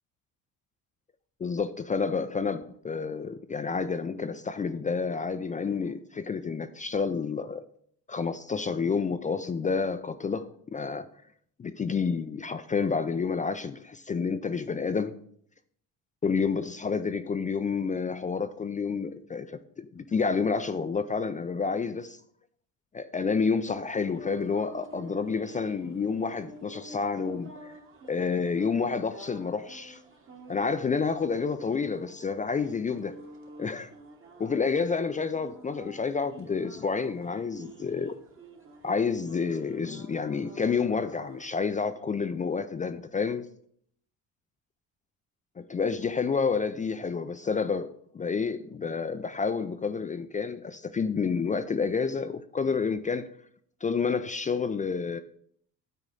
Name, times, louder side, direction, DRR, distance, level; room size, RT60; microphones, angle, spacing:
voice 1, 1.4-7.6 8.1-11.1 11.6-15.2 16.2-22.2 22.9-27.7 28.1-30.0 30.5-33.2 33.6-33.9 34.4-38.2 38.8-43.5 45.6-47.9 48.1-53.3 53.8-55.2, left 5 dB, 20° left, 0.3 m, -29 dB
sound 1, 24.0-41.6, right 2 dB, 35° right, 1.2 m, -49 dB
9.1 x 4.1 x 3.8 m
cardioid pair, 95°, 36 cm